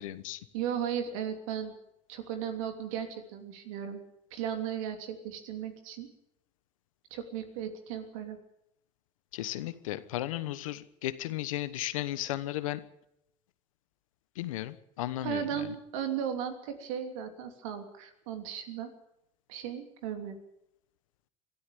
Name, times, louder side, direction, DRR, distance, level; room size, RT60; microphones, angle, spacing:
voice 1, 0.0-0.4 9.3-12.8 14.4-15.7, left 14 dB, 90° left, 14 dB, 1.2 m, -35 dB
voice 2, 0.5-1.7 2.1-4.0 4.3-6.1 7.1-8.4 15.2-18.9 19.5-20.4, right 9 dB, 85° right, 6 dB, 3.1 m, -36 dB
22.5 x 13.0 x 9.3 m, 0.81 s
hypercardioid pair, 65°, 17 cm